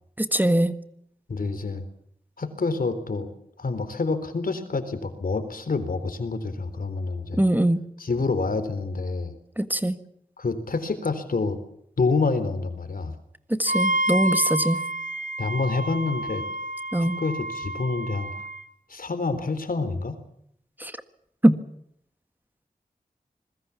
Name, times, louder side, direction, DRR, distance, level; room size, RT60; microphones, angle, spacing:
voice 1, 0.2-0.7 7.4-7.8 9.6-10.0 13.5-14.8 16.9-17.2 20.8-20.9 21.4-21.6, right 1 dB, 10° right, 10 dB, 1.7 m, -21 dB
voice 2, 1.3-1.8 2.4-3.3 3.6-7.4 8.0-9.3 10.4-11.6 12.0-13.2 15.4-16.4 17.0-18.3 18.9-20.2, left 3 dB, 75° left, 10 dB, 3.7 m, -27 dB
Wind instrument woodwind instrument, 13.7-18.6, right 1 dB, 60° right, 1.5 m, -29 dB
26.5 x 21.5 x 7.2 m, 0.71 s
wide cardioid pair, 55°, 15 cm